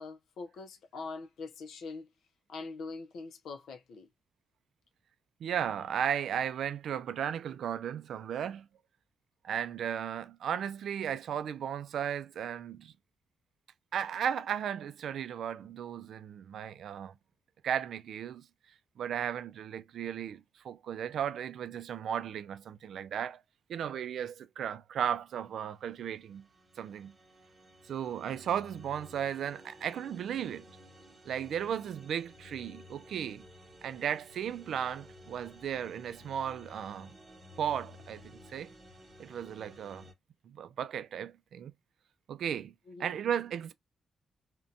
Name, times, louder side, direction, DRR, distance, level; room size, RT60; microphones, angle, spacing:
voice 1, 0.0-2.1 2.5-4.1 42.9-43.2, left 4 dB, 75° left, 0.5 m, -43 dB
voice 2, 5.4-8.7 9.4-12.9 13.9-17.1 17.6-18.5 19.0-23.4 23.7-26.5 26.8-27.1 27.8-30.7 31.3-33.4 33.8-37.1 37.6-38.7 39.2-40.0 40.4-41.7 42.3-42.7 43.0-43.7, right 9 dB, 70° right, 0.3 m, -35 dB
sound 1, 25.8-40.1, left 1 dB, 30° right, 0.7 m, -54 dB
2.6 x 2.2 x 2.6 m
wide cardioid pair, 155°, 0 cm